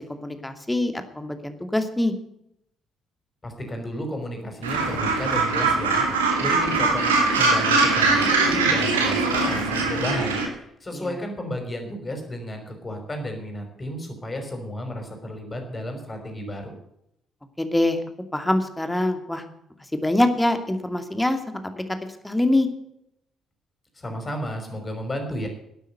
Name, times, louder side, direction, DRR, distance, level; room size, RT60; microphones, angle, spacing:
voice 1, 0.1-2.1 10.9-11.0 17.6-18.0 18.3-19.4 19.9-21.8 22.2-22.7, left 1 dB, 10° left, 7 dB, 2.4 m, -24 dB
voice 2, 3.4-6.1 6.4-16.7 23.9-25.5, equal, 25° left, 4 dB, 5.6 m, -33 dB
Gull seagull, 4.6-10.5, right 3 dB, 80° right, 2.5 m, -21 dB
12.5 x 12.0 x 6.8 m, 0.77 s
figure-of-eight pair, 45°, 0 cm